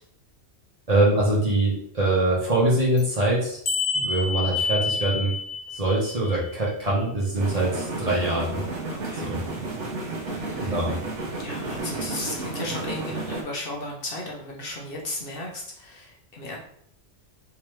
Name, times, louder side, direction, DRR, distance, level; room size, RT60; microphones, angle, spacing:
voice 1, 0.9-3.6 3.9-5.3 5.7-8.6 9.1-9.4 10.6-10.9, right 2 dB, 35° right, -5 dB, 1.0 m, -23 dB
sound 1, 3.0-3.1 3.7-6.3 7.5-7.6, left 4 dB, 85° left, 1.3 m, -28 dB
sound 2, 7.3-13.4, right 2 dB, 90° right, 1.1 m, -32 dB
voice 2, 8.9-9.3 10.3-10.8 11.4-16.6, left 2 dB, 55° left, -2 dB, 1.0 m, -35 dB
3.5 x 3.0 x 3.1 m, 0.65 s
omnidirectional pair, 1.2 m